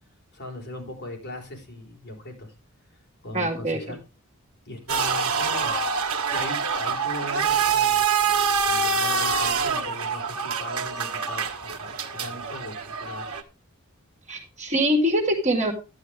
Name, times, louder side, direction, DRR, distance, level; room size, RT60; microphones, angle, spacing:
voice 1, 0.3-2.5 3.2-4.0 4.7-5.8 6.1-8.3 8.7-13.3, left 1 dB, 50° left, 0 dB, 4.0 m, -39 dB
voice 2, 3.3-3.8 14.3-15.7, equal, 35° right, 2 dB, 2.2 m, -23 dB
sound 1, 4.9-13.4, right 5 dB, 70° right, 1.3 m, -25 dB
11.5 x 10.0 x 3.4 m, 0.28 s
head